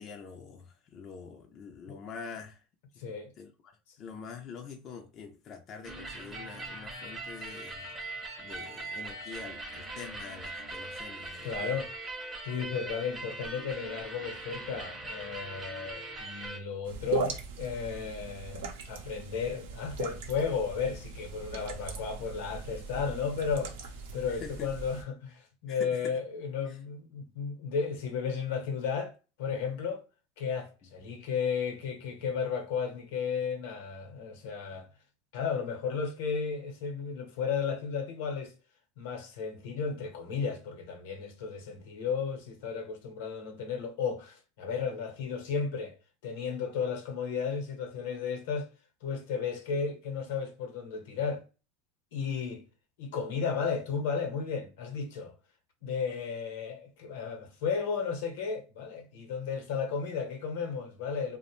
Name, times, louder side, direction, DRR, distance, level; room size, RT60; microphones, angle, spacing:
voice 1, 0.0-2.6 2.9-3.0 3.4-7.9 8.4-11.8 24.3-24.7 25.7-26.2 26.7-26.8, left 5 dB, 35° left, 0.4 m, -46 dB
voice 2, 3.0-3.3 11.4-11.9 12.4-23.7 24.1-30.0 30.4-34.9 35.3-38.5 39.0-46.0 46.2-48.7 49.0-51.4 52.1-52.6 53.0-55.3 55.8-61.4, left 6 dB, 80° left, 0.8 m, -34 dB
sound 1, 5.8-16.6, right 2 dB, 15° right, 0.6 m, -41 dB
sound 2, 16.8-25.0, right 4 dB, 85° right, 0.6 m, -39 dB
2.4 x 2.1 x 2.9 m
supercardioid pair, 130°, 0 cm